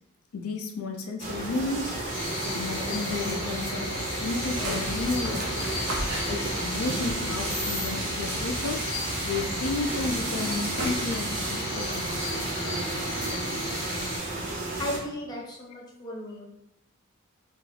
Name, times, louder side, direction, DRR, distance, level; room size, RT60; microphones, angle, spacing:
voice 1, 0.3-2.0 2.4-5.8 6.3-8.8 9.2-12.4, left 3 dB, 80° left, 3 dB, 0.4 m, -32 dB
sound 1, 1.2-15.0, right 2 dB, 35° right, 0.5 m, -32 dB
sound 2, 2.1-14.2, left 2 dB, 45° left, 0.7 m, -36 dB
sound 3, 3.9-8.8 9.1-11.4, right 1 dB, 90° right, 0.8 m, -37 dB
voice 2, 14.8-16.4, left 1 dB, 20° left, -3 dB, 0.5 m, -35 dB
2.4 x 2.3 x 3.2 m, 0.82 s
head